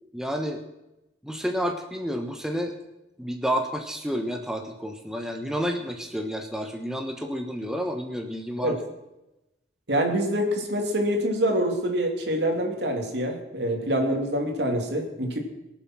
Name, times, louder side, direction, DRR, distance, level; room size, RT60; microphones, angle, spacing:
voice 1, 0.1-0.6 1.2-2.7 3.2-8.8, equal, 5° right, 4 dB, 1.1 m, -30 dB
voice 2, 9.9-15.4, equal, 75° right, 2 dB, 2.8 m, -25 dB
22.0 x 7.6 x 6.1 m, 0.95 s
head